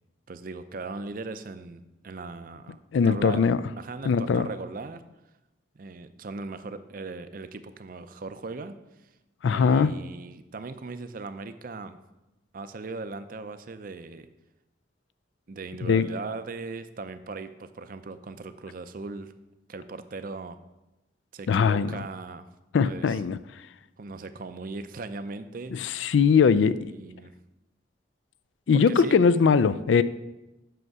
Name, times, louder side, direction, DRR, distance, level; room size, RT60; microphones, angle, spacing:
voice 1, 0.3-2.8 3.0-3.4 3.8-5.0 5.8-8.8 9.5-12.0 12.5-14.3 15.5-19.3 19.7-20.6 21.3-22.5 22.8-23.2 24.0-26.1 26.9-27.3 28.7-29.2, right 3 dB, 50° right, 11 dB, 0.5 m, -38 dB
voice 2, 2.9-3.6 4.1-4.5 9.4-9.9 15.9-16.1 21.5-21.9 22.7-23.4 25.7-26.9 28.7-30.0, left 6 dB, 80° left, 15 dB, 0.4 m, -21 dB
7.9 x 6.0 x 4.7 m, 0.98 s
head